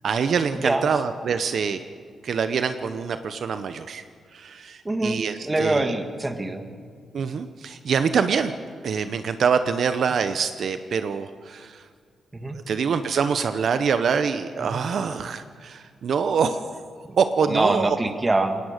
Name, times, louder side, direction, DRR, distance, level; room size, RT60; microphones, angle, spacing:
voice 1, 0.0-1.8 2.2-4.0 4.3-5.9 7.1-8.5 8.8-11.8 12.5-16.6 17.2-18.0, right 6 dB, 60° right, 10 dB, 0.8 m, -25 dB
voice 2, 4.8-6.7 12.3-12.6 14.6-14.8 17.1-17.2 17.5-18.6, right 2 dB, 15° right, 7 dB, 1.6 m, -25 dB
21.5 x 18.5 x 6.6 m, 2.1 s
cardioid pair, 130°, 0 cm